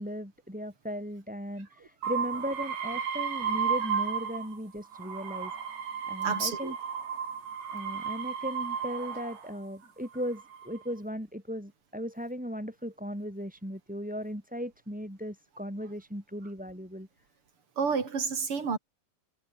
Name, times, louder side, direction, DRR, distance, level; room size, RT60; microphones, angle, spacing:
voice 1, 0.0-5.5 6.1-6.7 7.7-17.1, equal, ahead, 7.2 m, -37 dB
sound 1, 2.0-4.6 4.9-9.5 10.2-10.8, right 7 dB, 85° right, 6.3 m, -33 dB
voice 2, 6.2-6.7 17.8-18.8, right 5 dB, 35° right, 3.7 m, -30 dB
omnidirectional pair, 4.9 m